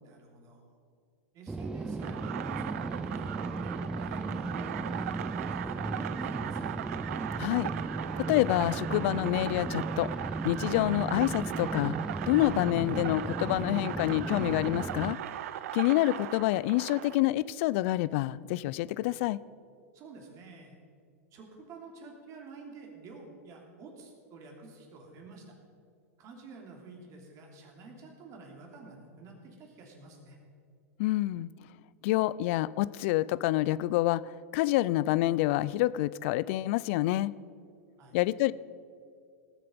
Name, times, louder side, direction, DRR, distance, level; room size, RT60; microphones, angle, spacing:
voice 1, 0.0-0.8 1.3-6.8 19.9-20.8 21.3-25.5 26.2-30.4 38.0-38.2, right 3 dB, 40° right, 1 dB, 3.1 m, -49 dB
sound 1, 1.5-15.2, right 3 dB, 10° right, 0.4 m, -36 dB
sound 2, 2.0-17.2, right 11 dB, 70° right, 0.6 m, -39 dB
voice 2, 7.4-7.7 8.2-10.1 10.4-12.0 12.3-15.2 15.7-19.4 31.0-31.5 32.0-37.3 38.1-38.5, left 16 dB, 55° left, 20 dB, 0.4 m, -27 dB
18.5 x 7.6 x 5.2 m, 2.3 s
hypercardioid pair, 110°, 8 cm